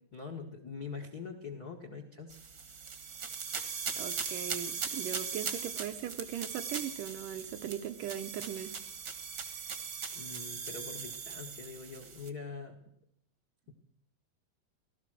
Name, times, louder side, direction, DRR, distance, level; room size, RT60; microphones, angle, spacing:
voice 1, 0.1-2.4 9.5-9.8 10.1-12.8, left 5 dB, 75° left, 6 dB, 0.8 m, -44 dB
sound 1, 2.3-12.3, right 6 dB, 55° right, 1.2 m, -39 dB
voice 2, 4.0-8.7, right 10 dB, 75° right, 9 dB, 2.2 m, -39 dB
18.0 x 13.0 x 6.1 m, 0.74 s
omnidirectional pair, 4.0 m